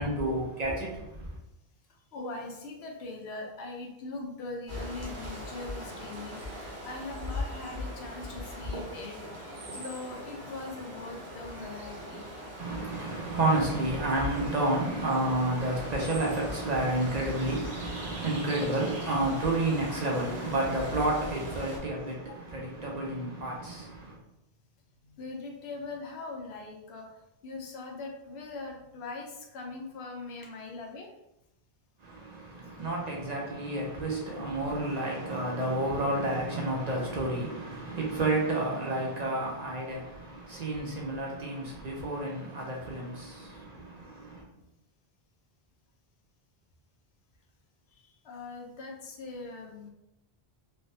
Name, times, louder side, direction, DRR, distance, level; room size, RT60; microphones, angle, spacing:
voice 1, 0.0-1.3 12.6-24.2 32.0-44.4, right 2 dB, 50° right, 0.6 m, -30 dB
voice 2, 2.1-9.2 9.7-12.3 22.3-22.4 25.1-27.1 27.4-31.1 43.7-43.8 48.2-49.9, left 3 dB, 80° left, 0.9 m, -41 dB
sound 1, 4.7-21.8, left 1 dB, 85° right, 1.0 m, -40 dB
3.3 x 2.2 x 2.6 m
omnidirectional pair, 1.1 m